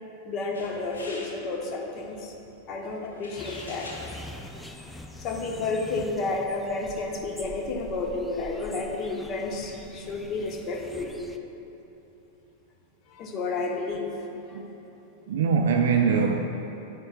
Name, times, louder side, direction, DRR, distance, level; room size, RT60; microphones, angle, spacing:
voice 1, 0.2-2.3 2.7-4.0 5.2-11.1 13.1-14.6, left 3 dB, 35° left, 2 dB, 1.0 m, -31 dB
sound 1, 0.5-6.0, left 2 dB, 70° left, 1.0 m, -47 dB
sound 2, 3.4-11.4, left 1 dB, 5° left, 0.4 m, -44 dB
voice 2, 15.3-16.4, right 5 dB, 60° right, 3 dB, 0.4 m, -23 dB
10.0 x 9.6 x 2.3 m, 3.0 s
figure-of-eight pair, 90°, 0 cm